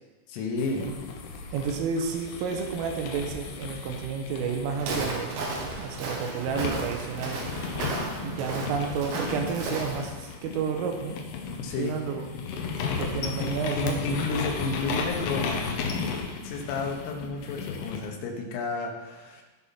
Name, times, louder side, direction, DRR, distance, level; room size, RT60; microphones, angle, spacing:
voice 1, 0.3-0.9 11.6-12.0 13.4-13.5 13.8-15.6 16.4-19.4, left 3 dB, 90° left, 2 dB, 4.0 m, -31 dB
sound 1, 0.6-6.0 6.5-18.1, left 5 dB, 70° left, 2.6 m, -35 dB
voice 2, 1.5-5.4 5.8-7.4 8.2-11.2 11.8-12.3 13.0-14.2, right 6 dB, 90° right, 4 dB, 3.4 m, -31 dB
Walk footsteps, 4.7-10.1, right 2 dB, 65° right, 3.7 m, -34 dB
17.5 x 5.8 x 4.2 m, 1.2 s
omnidirectional pair, 5.8 m